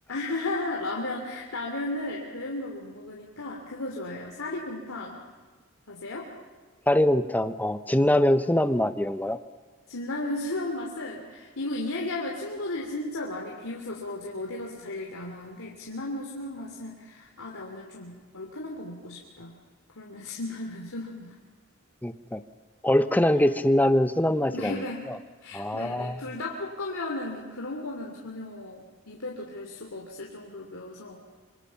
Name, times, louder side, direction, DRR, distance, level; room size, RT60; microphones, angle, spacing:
voice 1, 0.1-5.2 5.9-6.3 9.9-19.6 19.9-21.3 24.5-25.1 25.4-31.3, left 2 dB, 80° left, -2 dB, 3.1 m, -35 dB
voice 2, 6.9-9.4 22.0-22.4 22.8-25.2 25.5-26.2, left 1 dB, 10° left, 10 dB, 0.9 m, -23 dB
26.5 x 25.5 x 5.9 m, 1.4 s
head